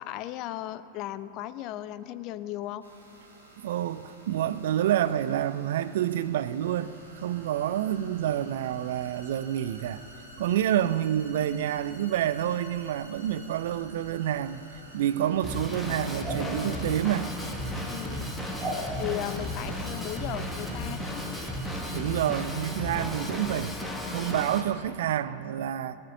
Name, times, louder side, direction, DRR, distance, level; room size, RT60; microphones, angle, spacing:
voice 1, 0.0-2.8 17.8-18.3 19.0-21.2, left 13 dB, 40° left, 0.5 m, -36 dB
sound 1, 2.8-22.5, right 1 dB, 75° right, 2.6 m, -50 dB
voice 2, 3.6-10.0 10.4-14.6 14.9-17.3 21.9-23.8 24.1-26.0, right 11 dB, 55° right, 0.4 m, -28 dB
Drum kit / Drum, 15.4-24.6, left 1 dB, 5° left, 1.6 m, -34 dB
sound 2, 16.2-16.4 18.6-18.8 19.6-19.7, right 2 dB, 30° right, 3.1 m, -33 dB
19.0 x 8.2 x 7.2 m
figure-of-eight pair, 90°, 0 cm